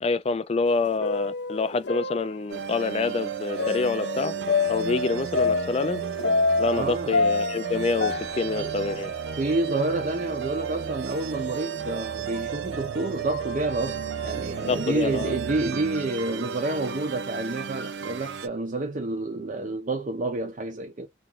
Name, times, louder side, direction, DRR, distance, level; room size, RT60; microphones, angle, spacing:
voice 1, 0.0-4.3 4.7-6.0 6.6-9.1 14.7-15.3, left 4 dB, 35° left, 0.4 m, -27 dB
sound 1, 0.6-2.8 3.6-6.8 7.1-9.5 9.7-9.8 10.6-10.7 11.5-11.7 12.3-12.4 13.3-13.6, left 4 dB, 90° left, 0.9 m, -28 dB
sound 2, 2.5-18.5, right 7 dB, 85° right, 0.5 m, -33 dB
voice 2, 6.7-7.2 8.5-8.7 9.4-21.1, right 2 dB, 45° right, 0.6 m, -29 dB
2.9 x 2.4 x 3.7 m
head